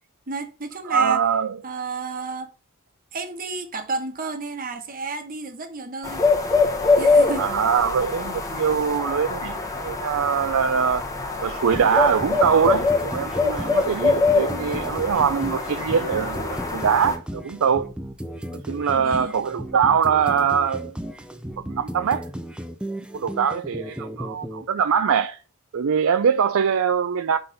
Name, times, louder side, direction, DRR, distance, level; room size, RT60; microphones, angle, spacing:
voice 1, 0.3-1.2 1.6-2.5 3.1-6.2 7.0-7.4 18.9-19.4, right 3 dB, 40° right, 1.2 m, -32 dB
voice 2, 0.8-1.6 7.4-11.0 11.4-17.9 18.5-20.9 21.6-22.3 23.1-25.4 25.7-27.4, right 7 dB, 70° right, 0.4 m, -22 dB
sound 1, 6.0-17.2, left 3 dB, 15° left, 1.3 m, -24 dB
sound 2, 11.7-24.6, equal, 5° right, 0.5 m, -35 dB
5.7 x 3.9 x 5.4 m
head